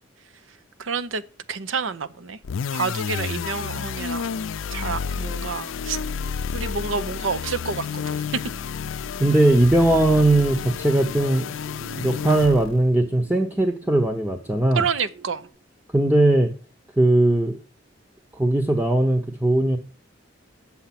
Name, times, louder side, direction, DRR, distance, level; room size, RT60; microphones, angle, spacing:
voice 1, 0.8-1.2 1.5-2.4 2.7-4.4 4.7-6.0 6.5-8.2 14.7-15.5, right 5 dB, 90° right, 0.7 m, -28 dB
sound 1, 2.4-12.8, left 6 dB, 85° left, 0.4 m, -30 dB
sound 2, 4.8-15.5, right 3 dB, 55° right, 1.8 m, -48 dB
voice 2, 9.2-11.5 12.0-14.9 15.9-16.5 17.0-17.6 18.3-19.8, right 1 dB, 10° right, 0.8 m, -19 dB
9.0 x 7.2 x 5.8 m
head